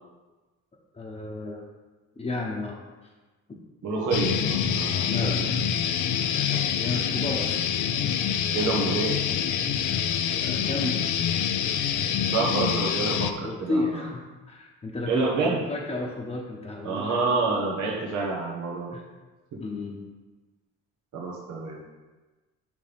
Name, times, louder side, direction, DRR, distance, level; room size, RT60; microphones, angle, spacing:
voice 1, 0.9-1.6 2.2-2.8 5.1-5.5 6.8-7.7 9.8-10.0 10.4-11.1 13.4-17.2 18.9-19.0 19.6-20.0, left 2 dB, 20° left, -4 dB, 1.0 m, -32 dB
voice 2, 3.8-5.3 6.5-7.0 8.5-9.2 12.3-14.1 15.1-15.6 16.8-19.0 21.1-21.8, right 3 dB, 75° right, -3 dB, 1.3 m, -28 dB
sound 1, 4.1-13.3, left 8 dB, 80° left, 0.6 m, -26 dB
7.8 x 5.3 x 3.5 m, 1.2 s
cardioid pair, 90°, 30 cm